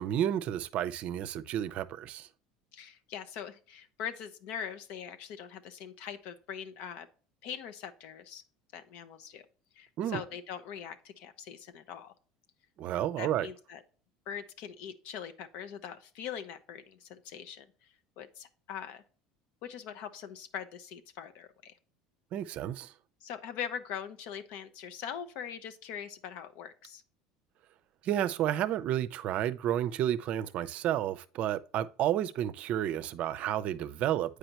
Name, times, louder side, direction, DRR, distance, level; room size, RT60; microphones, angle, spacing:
voice 1, 0.0-2.3 10.0-10.2 12.8-13.5 22.3-22.9 28.0-34.4, right 11 dB, 55° right, 0.5 m, -31 dB
voice 2, 2.7-7.1 7.4-8.4 8.7-9.5 9.7-12.1 13.2-13.8 14.3-19.0 19.6-21.8 23.2-27.0, left 8 dB, 65° left, 0.7 m, -42 dB
7.8 x 4.9 x 2.9 m
supercardioid pair, 100°, 3 cm